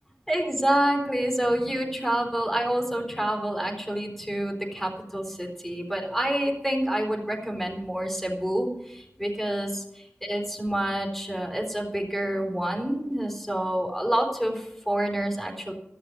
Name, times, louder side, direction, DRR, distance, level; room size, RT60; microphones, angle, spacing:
voice 1, 0.3-15.7, right 1 dB, 5° left, 0 dB, 3.9 m, -28 dB
14.0 x 6.8 x 9.7 m, 0.87 s
wide cardioid pair, 50°, 5 cm